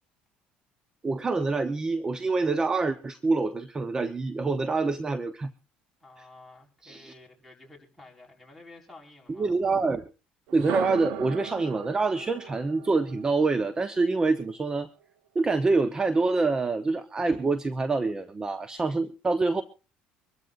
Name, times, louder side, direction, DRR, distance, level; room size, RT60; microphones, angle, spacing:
voice 1, 1.0-5.5 6.2-6.3 6.8-7.1 9.3-10.0 10.5-14.9 15.3-19.6, right 3 dB, 20° right, 0.9 m, -26 dB
voice 2, 6.0-9.5, left 2 dB, ahead, 5.1 m, -51 dB
sound 1, 10.5-14.5, right 13 dB, 85° right, 0.8 m, -38 dB
24.5 x 13.5 x 2.6 m
cardioid pair, 105°, 3 cm